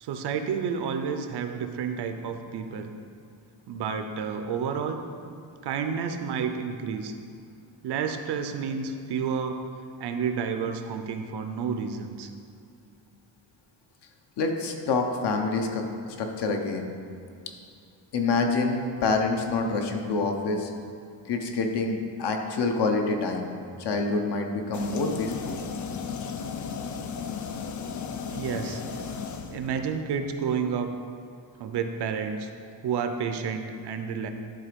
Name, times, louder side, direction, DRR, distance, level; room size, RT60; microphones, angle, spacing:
voice 1, 0.0-2.9 3.7-5.0 5.6-7.1 7.8-9.6 10.0-12.3 28.3-28.8 29.5-30.9 31.6-32.5 32.8-34.3, right 6 dB, 55° right, 7 dB, 0.6 m, -30 dB
voice 2, 14.4-16.9 18.1-20.7 21.3-23.5 23.8-25.6, left 3 dB, 60° left, 4 dB, 0.9 m, -27 dB
sound 1, 24.7-30.0, left 6 dB, 40° left, 0.5 m, -35 dB
11.5 x 3.9 x 5.1 m, 2.4 s
cardioid pair, 170°, 47 cm